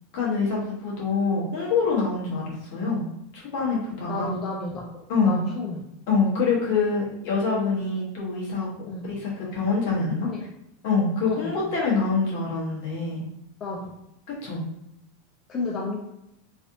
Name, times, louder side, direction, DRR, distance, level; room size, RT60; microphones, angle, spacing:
voice 1, 0.1-3.0 3.3-4.3 5.1-5.4 6.1-8.7 9.0-10.3 10.8-13.2 14.4-14.6, left 4 dB, 55° left, -4 dB, 1.2 m, -25 dB
voice 2, 4.1-4.8 5.2-5.8 8.9-9.0 10.2-10.4 11.2-11.6 13.6-13.9 15.5-16.0, left 3 dB, 25° left, -2 dB, 0.4 m, -31 dB
3.2 x 2.6 x 2.7 m, 0.83 s
supercardioid pair, 155°, 0 cm